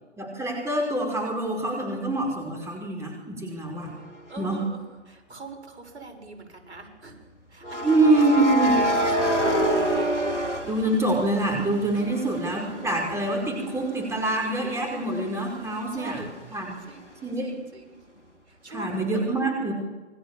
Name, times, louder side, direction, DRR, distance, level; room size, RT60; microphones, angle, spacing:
voice 1, 0.2-3.9 4.4-4.7 7.8-8.7 10.6-16.8 17.2-17.5 18.7-19.7, right 2 dB, 10° right, 2 dB, 5.0 m, -25 dB
sound 1, 4.3-4.6 7.6-11.5 11.9-15.5, right 1 dB, 85° left, 3.4 m, -27 dB
voice 2, 4.3-4.8 5.1-7.2 7.5-9.8 11.9-12.0 15.7-17.1 17.4-18.0 18.5-19.3, right 3 dB, 70° right, 5 dB, 6.6 m, -43 dB
27.5 x 23.5 x 7.4 m, 1.3 s
figure-of-eight pair, 120°, 35 cm